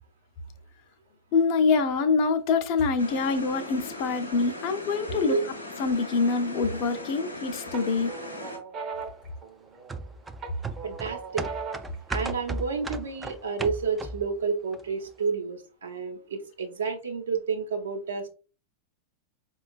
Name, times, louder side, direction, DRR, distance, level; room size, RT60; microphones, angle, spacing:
voice 1, 1.3-5.4 5.8-8.1, left 4 dB, 45° left, 0.5 m, -25 dB
sound 1, 3.0-8.6, left 2 dB, 80° left, 0.7 m, -39 dB
voice 2, 5.1-5.4 10.8-11.5 12.1-18.3, right 5 dB, 70° right, 0.8 m, -30 dB
sound 2, 6.7-7.3 7.7-10.0 10.4-12.0, right 5 dB, 30° right, 0.7 m, -39 dB
sound 3, 9.9-14.4 14.7-14.8, right 2 dB, 10° right, 0.3 m, -35 dB
5.0 x 2.3 x 2.3 m
figure-of-eight pair, 90°, 0 cm